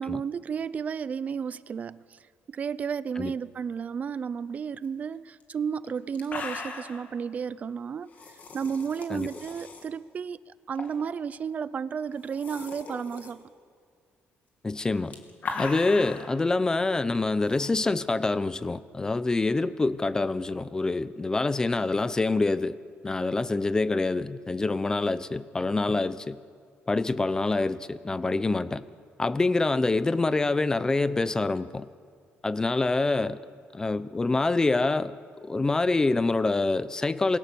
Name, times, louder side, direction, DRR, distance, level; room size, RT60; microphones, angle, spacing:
voice 1, 0.0-2.2 2.5-8.1 8.5-13.5, right 6 dB, 40° right, 17 dB, 0.6 m, -32 dB
sound 1, 5.4-5.5 5.8-5.9 6.1-7.0 8.1-9.8 10.7-11.1 11.4-11.5 12.1-13.3 14.7-16.3 17.4-17.7, left 4 dB, 40° left, 3.1 m, -38 dB
voice 2, 14.6-15.2 15.6-22.7 23.0-26.4 26.9-28.8 29.2-31.9 32.4-33.4 33.7-35.1 35.4-37.4, left 3 dB, 15° left, 14 dB, 0.8 m, -26 dB
27.0 x 22.5 x 7.0 m, 2.1 s
cardioid pair, 145°, 4 cm